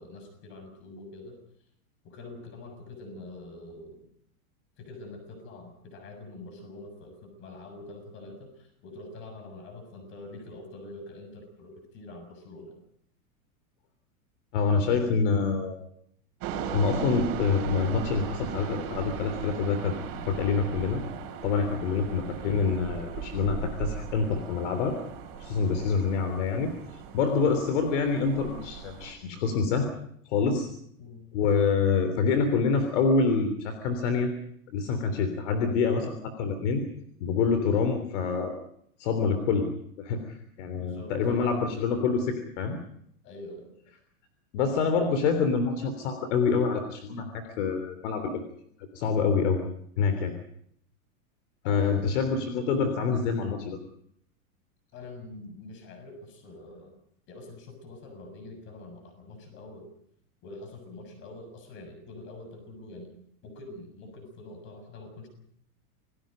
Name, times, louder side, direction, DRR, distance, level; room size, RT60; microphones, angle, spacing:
voice 1, 0.0-1.4 2.0-4.1 4.8-12.8 25.6-25.9 30.5-30.7 31.0-31.2 37.3-37.6 40.7-41.2 41.4-41.6 43.2-43.7 51.6-52.1 54.9-56.9 57.3-59.9 60.4-63.2 63.4-65.3, left 2 dB, 25° left, 6 dB, 6.7 m, -45 dB
voice 2, 14.5-15.8 16.7-19.9 20.3-21.0 21.4-25.0 25.4-26.7 27.1-29.9 30.3-30.7 31.3-34.3 34.7-36.8 37.2-38.5 39.0-39.7 40.0-42.8 44.5-48.4 49.0-49.6 50.0-50.3 51.7-53.8, left 5 dB, 55° left, 7 dB, 3.5 m, -26 dB
sound 1, 16.4-29.1, right 7 dB, 35° right, 4.4 m, -38 dB
28.0 x 19.5 x 5.2 m, 0.67 s
supercardioid pair, 175°, 43 cm